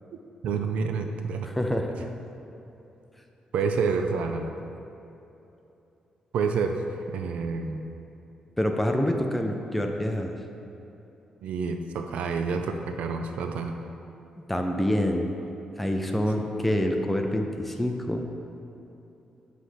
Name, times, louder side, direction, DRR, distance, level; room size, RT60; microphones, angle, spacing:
voice 1, 0.4-1.5 3.5-4.5 6.3-6.8 7.1-7.9 11.4-13.8, right 5 dB, 80° right, 6 dB, 0.5 m, -28 dB
voice 2, 1.4-2.1 8.6-10.3 14.5-15.2 15.8-18.2, left 1 dB, 5° left, 3 dB, 0.5 m, -26 dB
7.8 x 3.3 x 5.7 m, 2.9 s
wide cardioid pair, 145°, 2 cm